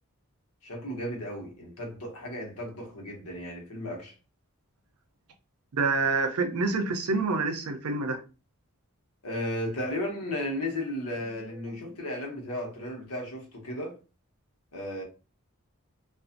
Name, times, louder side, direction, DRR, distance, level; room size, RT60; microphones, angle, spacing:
voice 1, 0.6-4.1 9.2-14.0 14.7-15.0, left 1 dB, 85° left, 0.9 m, -34 dB
voice 2, 5.7-8.2, right 3 dB, 85° right, 0.5 m, -27 dB
2.5 x 2.4 x 2.5 m
head